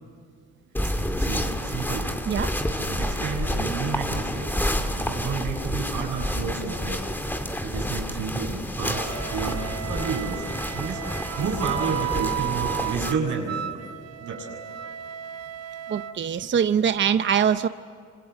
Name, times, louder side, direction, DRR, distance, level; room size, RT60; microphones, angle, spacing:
sound 1, 0.7-13.1, equal, 5° left, 2.4 m, -29 dB
voice 1, 0.8-2.2 2.7-4.5 5.0-13.8 14.2-14.6, right 5 dB, 80° right, 1 dB, 7.5 m, -31 dB
Wind instrument woodwind instrument, 9.1-16.2, right 12 dB, 55° right, 1.0 m, -34 dB
voice 2, 15.9-17.7, right 8 dB, 40° right, 11 dB, 0.7 m, -23 dB
28.5 x 26.5 x 7.8 m, 2.3 s
cardioid pair, 90°, 30 cm